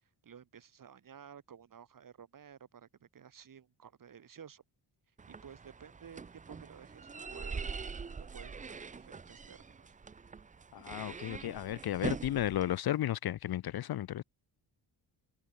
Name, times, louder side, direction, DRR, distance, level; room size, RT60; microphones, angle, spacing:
voice 1, 0.0-4.6 5.3-7.8 8.1-9.9, right 8 dB, 50° right, 5.7 m, -54 dB
sound 1, 5.2-12.8, right 5 dB, 20° right, 0.5 m, -43 dB
voice 2, 10.7-14.2, left 12 dB, 60° left, 0.7 m, -34 dB
wide cardioid pair, 175°, 43 cm